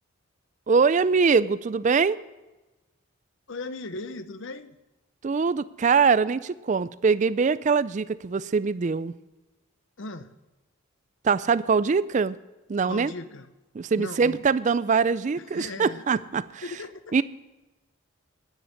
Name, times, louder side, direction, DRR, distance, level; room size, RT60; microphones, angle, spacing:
voice 1, 0.7-2.2 5.2-9.1 11.2-12.4 12.7-13.1 13.7-16.6 17.1-17.2, right 5 dB, 35° right, 17 dB, 0.3 m, -23 dB
voice 2, 3.5-4.8 10.0-10.3 12.9-13.5 13.9-14.5 15.4-16.2 16.6-17.2, left 2 dB, 60° left, 13 dB, 0.7 m, -38 dB
10.0 x 9.9 x 6.4 m, 1.1 s
head